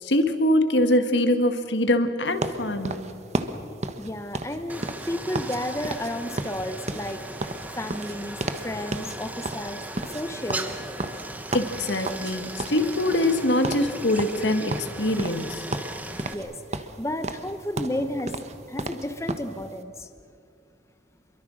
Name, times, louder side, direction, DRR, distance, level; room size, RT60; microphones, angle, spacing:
voice 1, 0.0-3.0 11.5-15.6, left 1 dB, 80° left, 7 dB, 1.8 m, -23 dB
sound 1, 2.4-5.6 5.8-6.1 6.4-8.7 8.9-9.2 9.4-12.3 12.6-13.4 13.6-13.9 14.2-15.5 15.7-16.5 16.7-19.5, right 2 dB, 40° right, 1.2 m, -32 dB
voice 2, 4.0-9.8 10.1-10.8 16.3-18.3 18.7-20.1, left 1 dB, 15° left, 8 dB, 1.0 m, -32 dB
Stream, 4.7-16.3, right 1 dB, 10° right, 1.2 m, -38 dB
26.5 x 23.0 x 6.4 m, 2.6 s
head